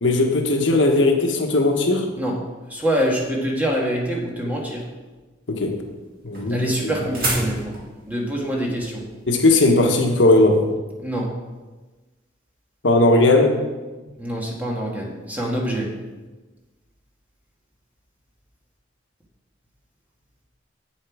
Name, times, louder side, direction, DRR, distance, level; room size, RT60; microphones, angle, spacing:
voice 1, 0.0-2.1 5.5-5.8 6.2-6.9 9.3-10.6 12.8-13.5, left 2 dB, 70° left, 3 dB, 1.1 m, -17 dB
voice 2, 2.7-4.8 6.5-7.7 8.1-9.0 11.0-11.3 14.2-15.9, equal, 10° right, -2 dB, 1.5 m, -25 dB
sound 1, 5.5-10.7, right 1 dB, 50° right, 2.3 m, -31 dB
7.9 x 7.3 x 4.8 m, 1.2 s
head